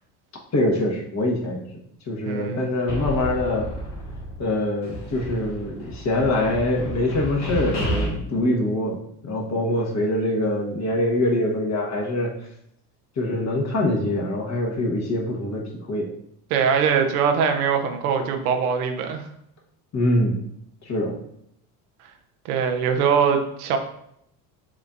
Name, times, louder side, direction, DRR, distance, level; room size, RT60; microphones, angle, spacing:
voice 1, 0.5-1.6 2.1-3.7 4.4-9.0 9.2-12.3 13.2-15.6 15.9-16.1 19.9-20.4 20.9-21.1, left 1 dB, 40° left, -1 dB, 1.3 m, -24 dB
voice 2, 2.2-2.7 16.5-19.3 22.4-23.8, right 6 dB, 85° right, 5 dB, 0.7 m, -22 dB
sound 1, 2.9-4.5 4.8-8.1, equal, 75° left, 1.7 m, -31 dB
7.1 x 2.7 x 2.5 m, 0.74 s
hypercardioid pair, 70°, 44 cm